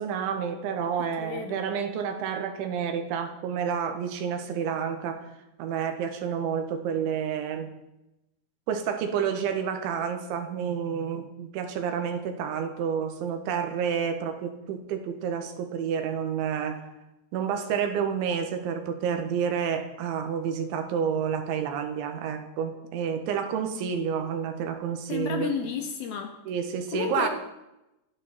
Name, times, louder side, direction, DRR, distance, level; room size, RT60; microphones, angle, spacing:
voice 1, 0.0-5.3 5.6-7.7 8.7-16.8 17.3-25.5 26.5-27.3, right 7 dB, 80° right, 6 dB, 3.8 m, -29 dB
voice 2, 1.0-1.6 25.1-26.4 26.9-27.3, left 7 dB, 65° left, 4 dB, 2.8 m, -32 dB
27.0 x 11.0 x 4.4 m, 0.92 s
omnidirectional pair, 5.4 m